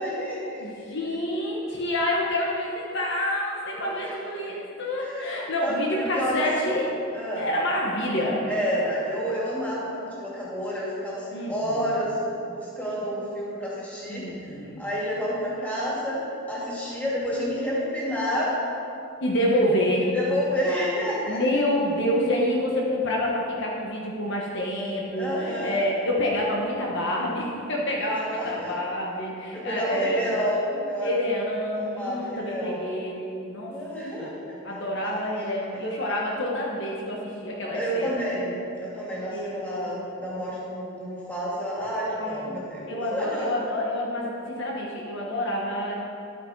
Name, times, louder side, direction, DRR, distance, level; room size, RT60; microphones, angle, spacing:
voice 1, 0.0-0.6 2.8-3.0 3.7-4.1 4.4-4.5 5.0-6.7 7.1-7.4 8.5-12.1 12.4-18.6 20.1-21.4 25.1-25.8 28.1-28.7 29.5-31.2 31.8-32.8 33.7-34.6 34.9-35.3 35.6-35.8 37.7-43.5, equal, 5° left, -7 dB, 2.8 m, -30 dB
voice 2, 0.6-6.9 7.4-8.5 11.3-11.9 14.1-14.8 19.2-20.1 21.3-30.3 31.0-33.7 34.2-34.3 34.6-38.3 39.3-39.9 42.2-42.5 42.9-45.9, left 1 dB, 60° left, -3 dB, 1.2 m, -28 dB
11.0 x 8.6 x 4.6 m, 2.7 s
head